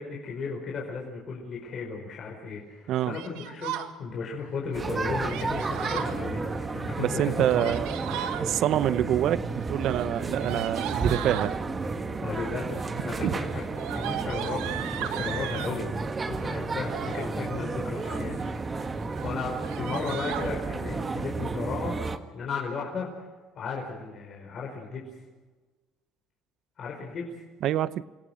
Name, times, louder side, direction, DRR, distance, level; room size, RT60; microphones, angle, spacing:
voice 1, 0.0-7.7 12.2-13.7 13.9-15.9 16.2-18.5 19.2-23.3 23.5-25.1 26.8-27.3, left 5 dB, 45° left, 4.9 m, -35 dB
Yell, 3.1-3.9 5.3-6.2 7.3-8.4 9.7-11.5 12.4-12.8 13.1-15.8 16.7-17.3 17.8-18.4 18.7-18.9 19.1-19.3 19.6-20.5, right 11 dB, 85° right, 1.7 m, -36 dB
sound 1, 4.7-22.2, right 3 dB, 25° right, 1.5 m, -32 dB
voice 2, 7.0-7.9 8.4-11.6 13.2-13.3 27.6-28.0, right 11 dB, 60° right, 0.8 m, -26 dB
28.0 x 17.0 x 6.6 m
cardioid pair, 105°, 0 cm